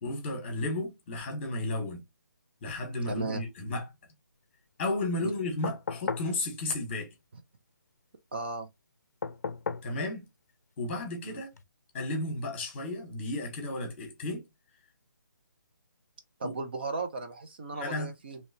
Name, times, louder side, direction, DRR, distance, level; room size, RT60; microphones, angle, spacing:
voice 1, 0.0-2.0 2.6-3.9 4.8-7.1 9.8-10.3 10.8-11.5 11.9-14.5 16.4-16.5 17.7-18.1, left 2 dB, 15° left, 1.1 m, -33 dB
voice 2, 3.0-3.4 5.2-5.3 8.3-8.7 11.2-11.4 16.4-18.4, right 3 dB, 30° right, 0.5 m, -36 dB
sound 1, 5.6-6.4 9.2-9.9 11.5-11.6, left 5 dB, 50° left, 0.5 m, -35 dB
3.1 x 2.7 x 2.7 m
hypercardioid pair, 175°, 11 cm